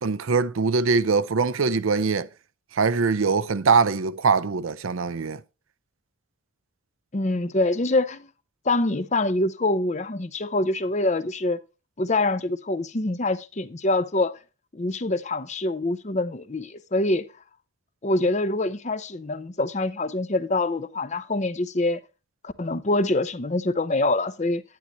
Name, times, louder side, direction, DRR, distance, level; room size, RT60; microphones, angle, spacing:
voice 1, 0.0-2.3 2.7-5.4, right 4 dB, 70° right, 0.6 m, -22 dB
voice 2, 7.1-8.3 8.7-11.6 12.0-14.3 14.7-17.2 18.0-22.0 22.4-24.6, left 2 dB, 35° left, 0.6 m, -25 dB
10.5 x 9.9 x 3.0 m
head